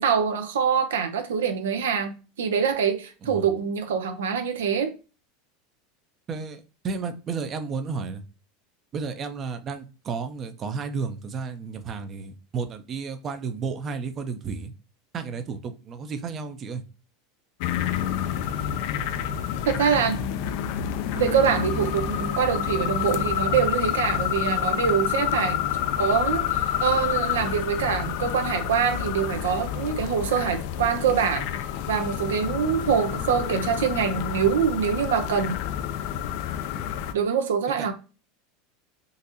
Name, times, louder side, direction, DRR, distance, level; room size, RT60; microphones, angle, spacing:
voice 1, 0.0-4.9 19.7-20.2 21.1-25.6 26.0-31.5 31.9-35.6 37.1-37.9, right 7 dB, 90° right, 0.5 m, -24 dB
voice 2, 6.3-8.2 8.9-14.7 15.1-16.8 36.7-37.0 37.8-37.9, right 5 dB, 35° right, 0.5 m, -32 dB
sound 1, 17.6-37.1, left 10 dB, 65° left, 0.4 m, -28 dB
3.9 x 2.5 x 2.7 m
supercardioid pair, 105°, 0 cm